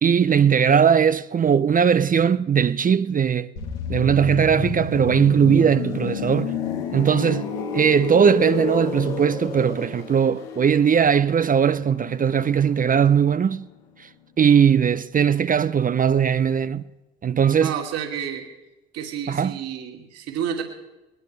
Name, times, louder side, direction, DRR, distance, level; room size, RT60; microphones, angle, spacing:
voice 1, 0.0-3.5 3.9-6.6 6.9-7.5 7.7-13.7 14.0-14.1 14.4-16.8 17.2-17.7 19.3-19.5, right 7 dB, 30° right, 0.6 m, -19 dB
sound 1, 3.6-13.2 13.5-13.7, left 7 dB, 80° left, 2.2 m, -31 dB
voice 2, 17.6-18.5 18.9-20.6, right 8 dB, 60° right, 2.5 m, -30 dB
20.5 x 20.0 x 3.3 m
hypercardioid pair, 65°, 29 cm